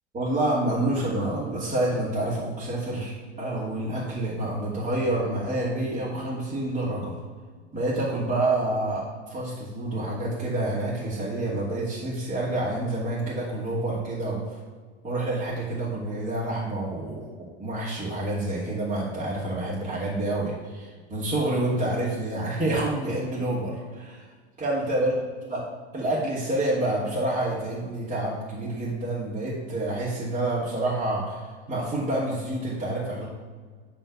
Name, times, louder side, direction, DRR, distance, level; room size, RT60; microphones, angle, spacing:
voice 1, 0.1-7.1 7.7-14.4 15.0-24.2 24.6-25.1 25.5-25.6 25.9-33.3, right 1 dB, 20° right, -8 dB, 2.6 m, -28 dB
9.7 x 3.4 x 6.8 m, 1.5 s
hypercardioid pair, 105°, 35 cm